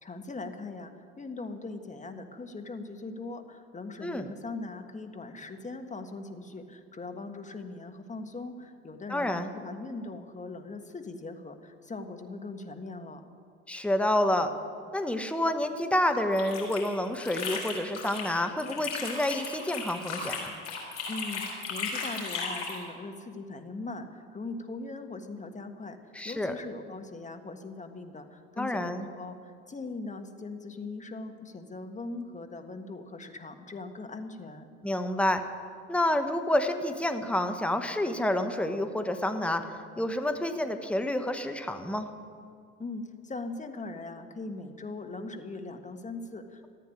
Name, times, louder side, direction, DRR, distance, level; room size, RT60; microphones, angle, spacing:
voice 1, 0.0-13.3 21.1-34.7 42.8-46.7, left 3 dB, 20° left, 6 dB, 1.6 m, -40 dB
voice 2, 9.1-9.5 13.7-14.5 14.9-20.5 26.1-26.5 28.6-29.1 34.8-35.4 35.9-39.7 40.0-42.1, left 1 dB, 5° left, 7 dB, 1.2 m, -28 dB
sound 1, 16.1-18.3 18.6-22.8, left 4 dB, 85° left, 4.3 m, -36 dB
14.5 x 9.3 x 9.8 m, 2.3 s
hypercardioid pair, 65°, 35 cm